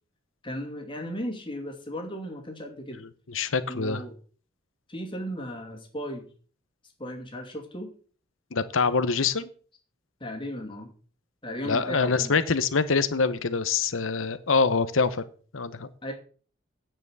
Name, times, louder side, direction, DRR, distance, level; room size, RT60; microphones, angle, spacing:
voice 1, 0.4-3.0 3.7-4.1 4.9-6.3 7.0-7.9 10.2-10.9 11.4-12.4 16.0-16.1, equal, 25° left, 2 dB, 2.6 m, -35 dB
voice 2, 3.0-4.0 8.5-9.5 11.6-15.2 15.5-15.9, left 4 dB, 90° left, 13 dB, 0.9 m, -25 dB
9.5 x 5.8 x 8.1 m, 0.41 s
head